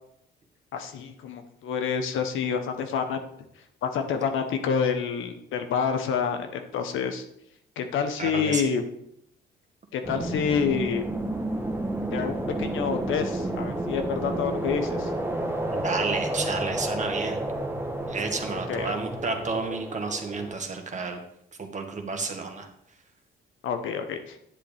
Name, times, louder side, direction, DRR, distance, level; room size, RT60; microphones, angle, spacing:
voice 1, 0.7-3.2 3.8-7.2 7.8-8.8 9.9-11.0 12.1-15.1 18.7-18.9 23.6-24.3, left 6 dB, 80° left, 6 dB, 1.1 m, -28 dB
voice 2, 8.2-8.7 15.7-17.4 18.1-21.2 21.6-22.7, right 4 dB, 35° right, 4 dB, 1.6 m, -31 dB
sound 1, 10.0-20.6, right 1 dB, 10° right, 1.2 m, -31 dB
10.5 x 7.9 x 3.5 m, 0.75 s
cardioid pair, 90°, 20 cm